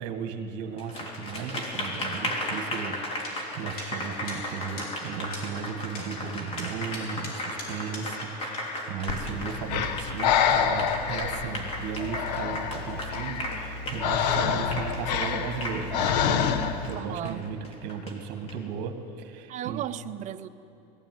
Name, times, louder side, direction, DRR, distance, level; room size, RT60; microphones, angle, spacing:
voice 1, 0.0-16.5 16.8-19.8, right 6 dB, 60° right, 6 dB, 1.9 m, -36 dB
Applause, 0.8-18.5, left 1 dB, 30° left, 3.3 m, -35 dB
sound 1, 3.2-3.3 3.8-3.9 4.3-4.4 4.8-4.9 5.3-5.4 5.9-6.1 6.6-8.3 8.5-8.6, left 2 dB, 50° left, 5.5 m, -39 dB
Breathing, 9.1-17.0, left 7 dB, 85° left, 1.3 m, -28 dB
voice 2, 17.0-17.5 19.5-20.5, right 11 dB, 35° right, 10 dB, 0.7 m, -35 dB
19.5 x 15.5 x 9.4 m, 2.9 s
supercardioid pair, 140°, 21 cm